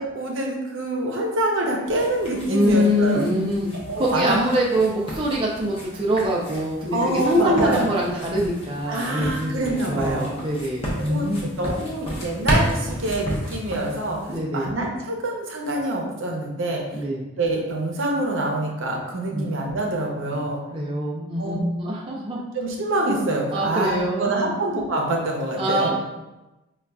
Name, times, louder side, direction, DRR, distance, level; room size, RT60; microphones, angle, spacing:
voice 1, 0.0-3.2 3.9-4.4 6.9-7.9 8.9-10.3 11.0-14.2 14.5-16.8 17.4-20.6 21.4-21.6 22.5-25.9, right 1 dB, 75° right, 0 dB, 0.7 m, -25 dB
sound 1, 1.9-14.4, equal, 30° left, 0.7 m, -32 dB
voice 2, 2.5-3.7 4.0-9.6 9.9-11.5 14.3-14.7 16.9-17.2 19.3-19.5 20.3-20.4 20.7-22.4 23.5-24.5 25.6-25.9, equal, 25° right, -4 dB, 0.4 m, -24 dB
5.3 x 2.3 x 2.3 m, 1.0 s
head